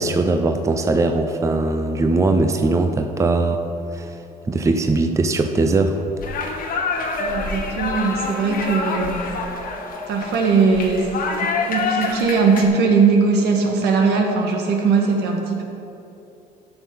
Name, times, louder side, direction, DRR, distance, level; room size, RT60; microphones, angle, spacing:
voice 1, 0.0-3.6 3.9-4.2 4.5-6.0, right 3 dB, 20° right, 6 dB, 0.6 m, -20 dB
sound 1, 6.2-12.6, left 4 dB, 55° left, 1.4 m, -26 dB
voice 2, 7.2-9.2 10.1-11.1 11.4-15.6, right 4 dB, 80° right, 1 dB, 1.6 m, -19 dB
11.5 x 6.5 x 5.6 m, 2.9 s
cardioid pair, 110°, 17 cm